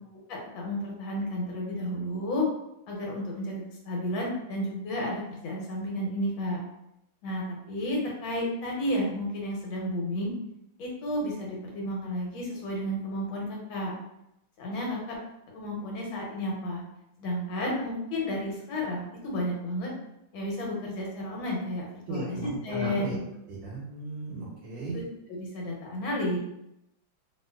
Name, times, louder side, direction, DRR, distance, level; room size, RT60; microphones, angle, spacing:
voice 1, 0.3-2.4 2.9-6.6 7.2-10.3 10.8-13.9 14.6-15.2 15.5-16.8 17.2-19.9 20.3-23.2 25.3-26.4, left 1 dB, 75° left, -2 dB, 1.6 m, -32 dB
voice 2, 22.1-23.2 23.5-25.0, right 2 dB, 70° right, -5 dB, 1.3 m, -36 dB
2.9 x 2.9 x 2.2 m, 0.84 s
omnidirectional pair, 2.2 m